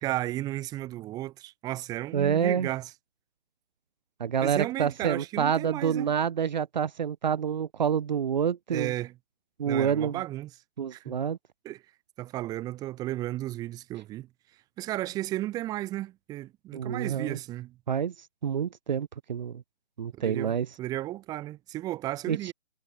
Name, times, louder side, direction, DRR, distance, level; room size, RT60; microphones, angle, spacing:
voice 1, 0.0-2.9 4.4-6.1 8.7-9.1 9.7-10.5 10.9-11.2 11.6-11.8 12.2-14.3 14.8-17.8 20.1-22.5, right 15 dB, 10° right, 3.4 m, -34 dB
voice 2, 2.1-2.7 4.2-8.9 9.6-10.2 10.8-11.4 16.7-17.4 17.9-19.6 20.0-20.7 22.3-22.5, right 8 dB, 45° right, 2.0 m, -28 dB
hypercardioid pair, 165°, 32 cm